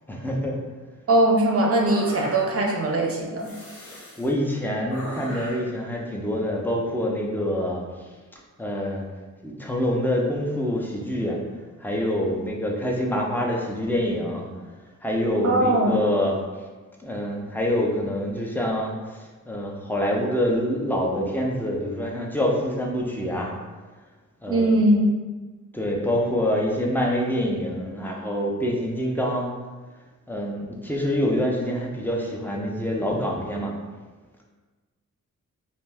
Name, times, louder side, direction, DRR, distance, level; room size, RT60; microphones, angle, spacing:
voice 1, 0.1-0.6 3.9-8.1 8.6-9.0 9.4-11.4 11.8-14.5 15.0-16.3 17.0-23.5 24.4-24.7 25.7-29.5 30.3-33.7, equal, 5° left, -1 dB, 0.4 m, -26 dB
voice 2, 1.1-3.5 15.4-15.9 24.5-25.1, right 1 dB, 45° right, 0 dB, 0.5 m, -20 dB
sound 1, 1.9-2.8 3.4-4.3 4.9-5.7, left 1 dB, 65° left, 0.8 m, -38 dB
2.6 x 2.2 x 3.3 m, 1.3 s
wide cardioid pair, 130°, 31 cm